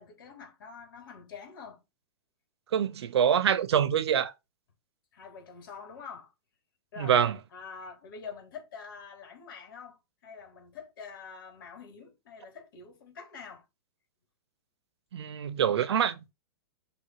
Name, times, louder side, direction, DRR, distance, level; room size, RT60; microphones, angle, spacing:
voice 1, 0.0-1.8 5.1-6.3 6.9-7.2 7.5-13.6, left 6 dB, 55° left, 3.5 m, -46 dB
voice 2, 2.7-4.3 7.0-7.3 15.1-16.3, right 8 dB, 85° right, 0.9 m, -25 dB
6.3 x 3.5 x 4.8 m
supercardioid pair, 180°, 13 cm